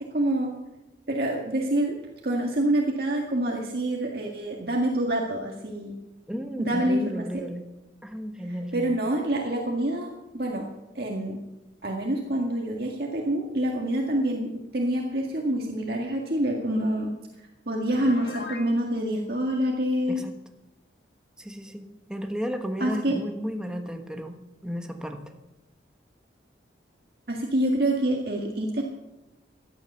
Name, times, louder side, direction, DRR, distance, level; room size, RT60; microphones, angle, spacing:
voice 1, 0.1-0.5 1.1-2.0 2.2-6.0 6.6-7.3 8.7-10.6 11.0-11.4 11.8-17.1 17.7-20.2 22.8-23.2 27.3-28.8, right 1 dB, 55° right, 0 dB, 1.9 m, -26 dB
voice 2, 6.3-7.7 8.0-9.0 20.1-20.3 21.4-24.4 24.6-25.2, equal, 5° right, 4 dB, 1.2 m, -33 dB
Piano, 17.9-18.7, left 3 dB, 65° left, 1.9 m, -38 dB
17.5 x 12.0 x 6.8 m, 1.0 s
head